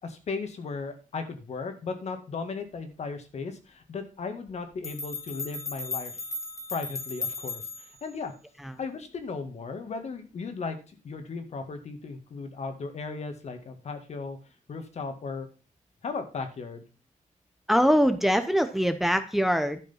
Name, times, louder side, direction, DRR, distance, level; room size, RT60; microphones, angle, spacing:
voice 1, 0.0-6.1 6.7-8.3 8.8-14.4 14.7-15.5 16.0-16.8, left 4 dB, 55° left, 7 dB, 2.0 m, -36 dB
sound 1, 4.5-4.6 4.8-8.0, left 3 dB, 20° left, 2.0 m, -36 dB
voice 2, 17.7-19.8, equal, ahead, 10 dB, 0.7 m, -23 dB
12.0 x 5.1 x 5.7 m, 0.34 s
cardioid pair, 100°, 14 cm